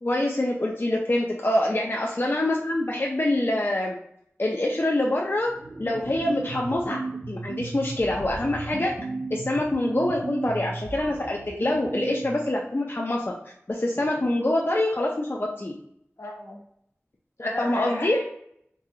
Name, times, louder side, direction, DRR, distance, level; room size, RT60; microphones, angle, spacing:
voice 1, 0.0-4.0 4.4-5.5 5.8-7.0 7.3-8.9 9.3-13.2 13.7-15.7 17.4-18.2, left 1 dB, 45° left, -1 dB, 0.5 m, -25 dB
sound 1, 5.4-12.5, right 3 dB, 75° right, 0.4 m, -35 dB
voice 2, 16.2-16.6 17.4-18.2, left 2 dB, 75° left, -1 dB, 1.0 m, -34 dB
4.0 x 2.3 x 2.7 m, 0.71 s
wide cardioid pair, 50°, 5 cm